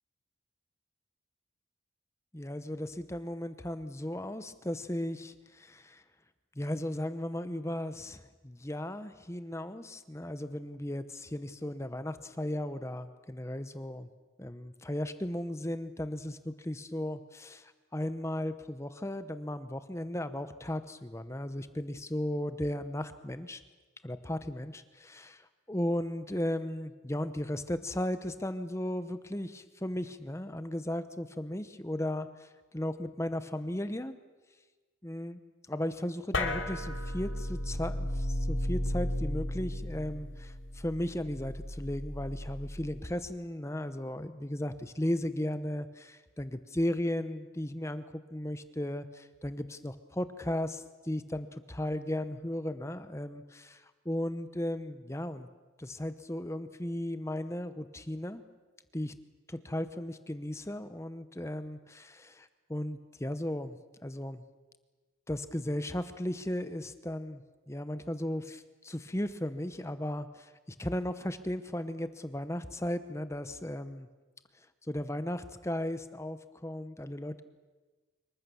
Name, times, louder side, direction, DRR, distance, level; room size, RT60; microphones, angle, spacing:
voice 1, 2.3-6.0 6.6-14.1 14.4-23.6 24.0-34.1 35.0-35.4 35.7-48.0 48.3-55.5 55.8-58.4 58.9-59.1 59.5-63.8 64.0-64.4 65.3-67.4 67.7-74.1 74.9-77.4, left 1 dB, 15° left, 11 dB, 0.8 m, -36 dB
sound 1, 36.3-43.1, left 1 dB, 75° left, 2.8 m, -34 dB
26.0 x 23.0 x 7.0 m, 1.3 s
head